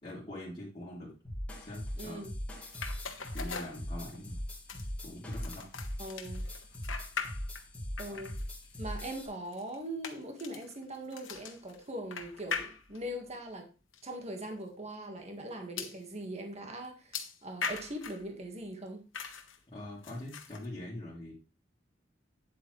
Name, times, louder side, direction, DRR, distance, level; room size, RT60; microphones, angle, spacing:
voice 1, 0.0-1.1 1.6-2.2 3.3-4.4 5.0-5.6 8.1-8.2 19.7-21.3, left 1 dB, 30° left, -10 dB, 3.0 m, -43 dB
sound 1, 1.2-9.3, equal, 5° left, 3.2 m, -40 dB
voice 2, 2.0-2.3 6.0-6.4 8.0-8.4 8.8-13.7 14.0-19.0, right 1 dB, 35° right, 4 dB, 1.6 m, -41 dB
sound 2, 2.7-4.3 4.7-7.7 8.0-13.2 13.9-14.0 14.4-14.5 15.8-16.0 17.1-18.3 19.1-19.6 20.0-20.7, left 5 dB, 80° left, 1.2 m, -41 dB
9.5 x 8.0 x 3.2 m, 0.32 s
head